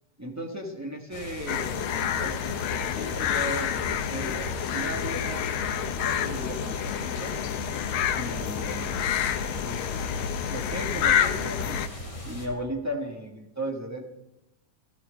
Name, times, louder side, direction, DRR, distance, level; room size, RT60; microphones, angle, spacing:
voice 1, 0.2-2.4 2.7-7.4 8.2-8.9 9.6-9.9 10.5-11.8 12.2-14.0, right 1 dB, 20° right, 0 dB, 0.4 m, -36 dB
sound 1, 1.1-12.5, equal, 10° left, 3.7 m, -39 dB
sound 2, 1.5-11.9, left 9 dB, 85° left, 1.1 m, -28 dB
17.5 x 14.0 x 5.0 m, 0.93 s
omnidirectional pair, 3.3 m